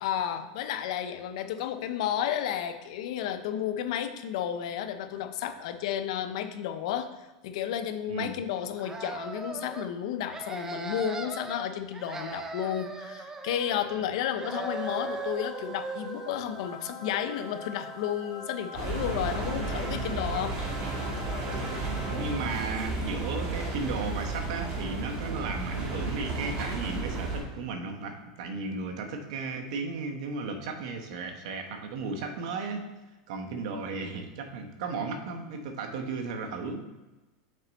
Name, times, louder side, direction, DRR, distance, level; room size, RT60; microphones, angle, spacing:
voice 1, 0.0-7.1 7.4-20.6, left 9 dB, 65° left, 9 dB, 0.6 m, -32 dB
sound 1, 8.8-9.9 10.3-11.7 11.9-14.1 14.4-16.4, right 3 dB, 15° right, 0.5 m, -38 dB
sound 2, 14.6-22.9, left 2 dB, 10° left, 2.1 m, -44 dB
sound 3, 18.7-27.4, right 2 dB, 40° right, 1.9 m, -33 dB
voice 2, 22.1-32.8 33.3-36.8, right 4 dB, 70° right, 5 dB, 1.0 m, -35 dB
6.6 x 4.3 x 4.0 m, 1.1 s
supercardioid pair, 145°, 3 cm